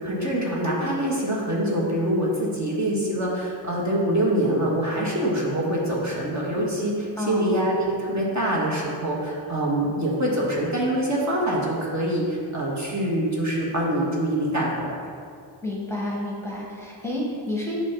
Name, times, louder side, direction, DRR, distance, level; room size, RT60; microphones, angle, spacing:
voice 1, 0.0-15.0, right 1 dB, 40° right, -4 dB, 1.5 m, -25 dB
voice 2, 7.2-7.5 15.6-17.8, left 1 dB, 5° left, -4 dB, 1.2 m, -30 dB
8.4 x 3.1 x 5.9 m, 2.2 s
wide cardioid pair, 115°, 43 cm